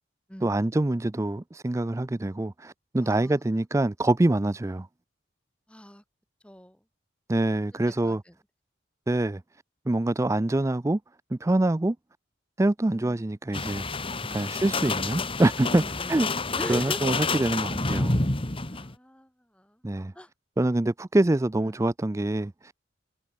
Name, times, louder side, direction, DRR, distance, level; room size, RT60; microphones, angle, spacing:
voice 1, 0.4-4.9 7.3-8.2 9.1-9.4 9.9-11.0 11.3-12.0 12.6-14.0 14.3-15.8 16.1-16.3 16.7-18.2 19.8-20.1 20.6-22.7, right 2 dB, 15° right, 0.4 m, -25 dB
voice 2, 3.0-3.4 5.7-6.0 6.4-6.8 7.8-8.3 12.8-13.2 14.2-14.5 15.7-16.2 16.6-17.0 18.6-19.8 20.2-20.3 21.6-21.8, equal, 5° left, 4.1 m, -41 dB
sound 1, 13.5-18.9, left 3 dB, 30° left, 1.7 m, -29 dB
head